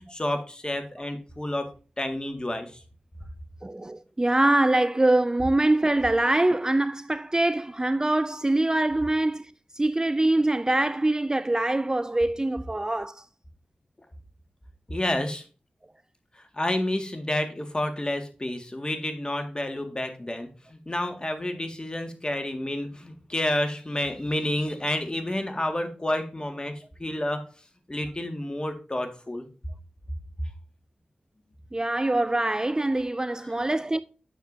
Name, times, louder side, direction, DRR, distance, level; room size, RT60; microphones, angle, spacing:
voice 1, 0.0-1.7 2.0-2.8 14.9-15.4 16.3-27.4 27.9-29.5 33.4-33.5, left 1 dB, 30° left, 1.8 m, -30 dB
voice 2, 3.6-13.2 31.7-34.0, right 2 dB, 20° right, 0.4 m, -24 dB
9.2 x 6.9 x 2.7 m
cardioid pair, 45°, 3 cm